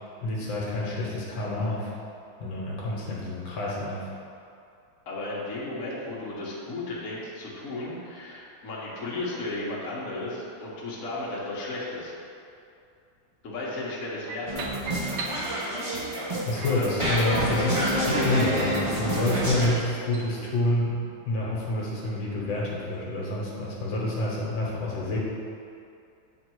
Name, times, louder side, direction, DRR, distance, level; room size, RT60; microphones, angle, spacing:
voice 1, 0.2-1.9 2.4-4.1 16.5-21.0 21.3-25.2, left 2 dB, 75° left, -5 dB, 1.8 m, -28 dB
voice 2, 5.1-12.1 13.4-14.5 16.7-16.8 19.2-19.4, left 2 dB, 45° left, -6 dB, 1.4 m, -34 dB
sound 1, 14.3-16.0 16.6-20.4, right 3 dB, 75° right, 0.8 m, -40 dB
sound 2, 14.5-19.7, right 1 dB, 35° right, 0.5 m, -28 dB
8.4 x 3.3 x 4.6 m, 2.5 s
omnidirectional pair, 2.2 m